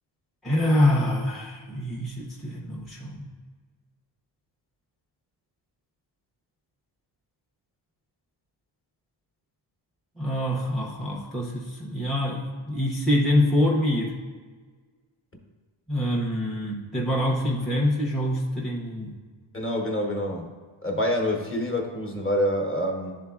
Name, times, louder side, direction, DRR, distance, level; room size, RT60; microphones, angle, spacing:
voice 1, 0.4-3.3 10.2-14.1 15.9-19.1, left 1 dB, ahead, -4 dB, 0.6 m, -25 dB
voice 2, 19.5-20.5 20.8-23.2, left 1 dB, 25° left, 1 dB, 1.0 m, -26 dB
11.5 x 3.8 x 2.3 m, 1.5 s
wide cardioid pair, 135°, 47 cm